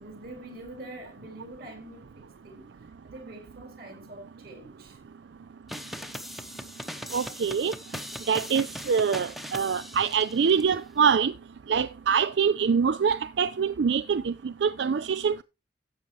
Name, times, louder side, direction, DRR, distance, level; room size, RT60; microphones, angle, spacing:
voice 1, 0.0-2.8 3.0-5.0, right 1 dB, 55° right, 3.8 m, -45 dB
sound 1, 5.7-10.6, equal, ahead, 0.8 m, -39 dB
voice 2, 7.1-7.7 8.3-11.3 11.7-15.4, right 6 dB, 85° right, 0.4 m, -24 dB
13.0 x 8.2 x 3.1 m
head